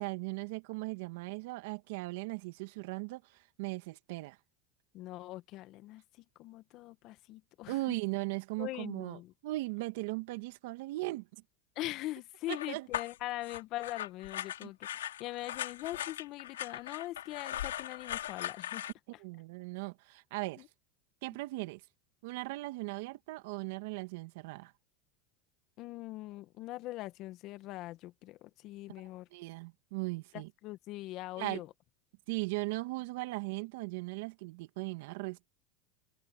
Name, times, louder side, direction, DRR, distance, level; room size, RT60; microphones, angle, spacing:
voice 1, 0.0-3.2 3.6-4.4 7.7-9.2 9.4-11.3 12.5-12.9 19.2-20.6 21.2-21.8 22.2-24.7 29.3-30.5 31.4-31.6 32.3-35.5, right 22 dB, 70° right, 2.1 m, -38 dB
voice 2, 4.9-6.0 6.4-8.0 8.6-9.3 11.7-18.8 20.6-20.7 25.8-29.3 30.3-31.7, left 17 dB, 55° left, 1.7 m, -42 dB
sound 1, 12.5-18.9, left 12 dB, 90° left, 2.7 m, -39 dB
open air
hypercardioid pair, 100°, 0 cm